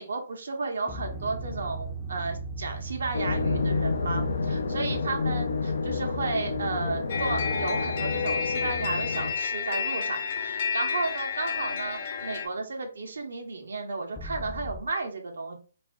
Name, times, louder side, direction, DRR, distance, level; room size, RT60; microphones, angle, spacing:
voice 1, 0.0-15.6, right 3 dB, 70° right, 4 dB, 0.6 m, -33 dB
sound 1, 0.9-9.2 14.2-14.8, right 3 dB, 15° left, 0.5 m, -40 dB
sound 2, 3.1-9.3, left 4 dB, 70° left, 0.4 m, -29 dB
sound 3, 7.1-12.5, left 6 dB, 50° left, 1.0 m, -30 dB
2.4 x 2.0 x 3.4 m, 0.37 s
figure-of-eight pair, 135°, 0 cm